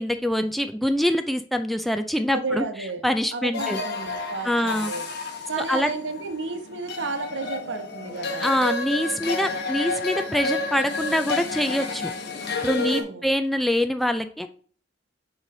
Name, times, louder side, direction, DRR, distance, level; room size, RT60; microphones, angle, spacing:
voice 1, 0.0-2.7 3.0-3.8 4.4-4.9 5.6-5.9 8.4-12.1 12.6-14.5, equal, ahead, 7 dB, 0.3 m, -24 dB
voice 2, 2.3-3.0 3.3-5.0 5.5-8.6 12.6-13.3, right 3 dB, 80° right, 7 dB, 1.0 m, -32 dB
sound 1, 3.5-13.0, left 3 dB, 60° left, 1.1 m, -30 dB
6.5 x 3.2 x 5.3 m, 0.44 s
head